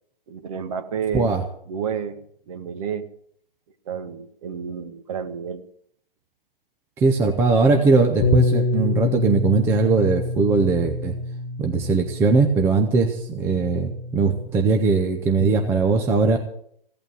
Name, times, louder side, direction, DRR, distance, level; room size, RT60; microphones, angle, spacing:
voice 1, 0.3-1.3 1.7-3.1 3.9-5.6 7.2-7.3, right 7 dB, 35° right, 10 dB, 1.4 m, -30 dB
voice 2, 7.0-11.2 11.6-16.4, right 4 dB, 10° right, 5 dB, 0.6 m, -20 dB
Bass guitar, 8.2-14.5, left 2 dB, 40° left, 1.5 m, -27 dB
16.0 x 8.8 x 8.0 m, 0.66 s
figure-of-eight pair, 130°, 29 cm